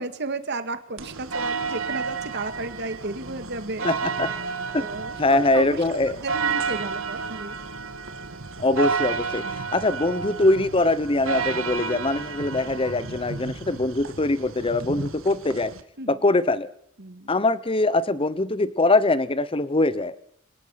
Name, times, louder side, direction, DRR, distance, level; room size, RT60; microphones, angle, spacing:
voice 1, 0.0-3.9 4.8-7.6 9.4-9.8 16.0-16.2 17.0-17.3, right 3 dB, 55° right, 10 dB, 1.9 m, -33 dB
sound 1, 1.0-15.8, right 5 dB, 85° right, 1.8 m, -31 dB
voice 2, 3.8-4.3 4.7-4.9 5.2-6.2 8.6-15.7 16.1-16.7 17.3-20.2, left 2 dB, 25° left, 16 dB, 0.9 m, -23 dB
26.5 x 18.5 x 5.8 m, 0.68 s
head